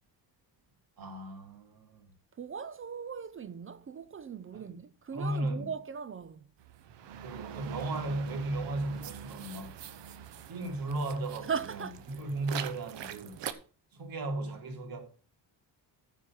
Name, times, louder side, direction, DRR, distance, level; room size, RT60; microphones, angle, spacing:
voice 1, 1.0-2.1 4.5-4.7 5.1-5.7 7.2-9.8 10.5-13.4 13.9-15.0, right 2 dB, 55° right, 2.9 m, -36 dB
voice 2, 2.4-6.5 11.5-12.0, right 6 dB, 30° right, 0.5 m, -38 dB
sound 1, 6.6-13.5, right 9 dB, 80° right, 1.2 m, -43 dB
15.0 x 5.0 x 5.9 m
cardioid pair, 130°, 43 cm